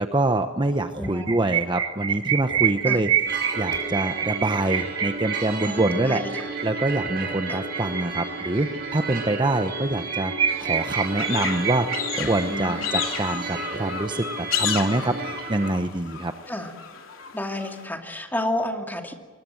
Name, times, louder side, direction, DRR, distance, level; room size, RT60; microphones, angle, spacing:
voice 1, 0.0-3.1 3.6-6.2 6.6-16.3, right 2 dB, 25° right, 7 dB, 0.9 m, -25 dB
voice 2, 1.0-1.5 2.8-3.0 5.7-6.4 7.5-7.6 12.5-12.9 16.5-16.7 17.3-19.1, left 1 dB, 10° left, 3 dB, 2.5 m, -31 dB
sound 1, 1.0-9.0 9.4-9.5 9.7-9.8 10.1-13.2, right 8 dB, 85° right, 1.6 m, -27 dB
sound 2, 3.3-15.7, right 3 dB, 55° right, 5.1 m, -33 dB
sound 3, 10.8-17.9, left 8 dB, 85° left, 3.1 m, -32 dB
24.0 x 21.5 x 7.7 m, 1.3 s
head